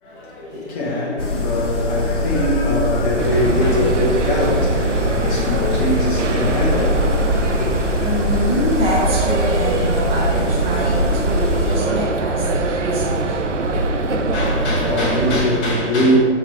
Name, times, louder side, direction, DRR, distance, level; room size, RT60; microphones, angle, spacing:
voice 1, 0.0-7.7 14.3-16.2, left 1 dB, 10° left, 0.5 m, -22 dB
sound 1, 1.2-11.8, left 2 dB, 30° left, 1.2 m, -23 dB
sound 2, 3.2-15.4, right 2 dB, 80° right, 0.8 m, -22 dB
voice 2, 8.0-13.4, right 1 dB, 15° right, 1.6 m, -25 dB
7.3 x 4.0 x 4.6 m
figure-of-eight pair, 135°, 37 cm